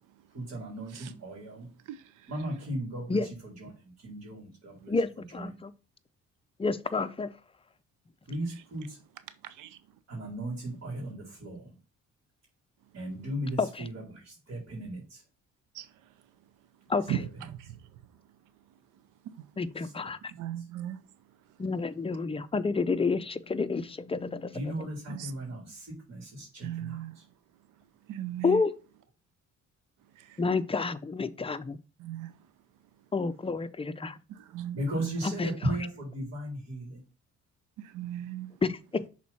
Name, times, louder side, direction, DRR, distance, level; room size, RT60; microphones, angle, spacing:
voice 1, 0.3-1.7 2.3-4.9 5.3-5.5 8.3-9.0 10.1-11.7 12.9-15.2 19.8-19.9 24.5-27.2 34.7-37.0, right 1 dB, 55° right, 3.4 m, -36 dB
voice 2, 4.9-5.7 6.6-7.3 13.6-13.9 16.9-17.2 19.6-20.3 21.6-25.2 28.4-28.7 30.4-31.8 33.1-34.2 35.2-35.5 38.6-39.1, left 4 dB, 20° left, 0.6 m, -30 dB
voice 3, 20.4-21.0 25.1-25.3 26.6-27.2 28.1-28.6 32.0-32.3 34.5-35.1 37.9-38.5, right 13 dB, 90° right, 0.6 m, -36 dB
6.1 x 4.2 x 4.2 m
cardioid pair, 90°, 30 cm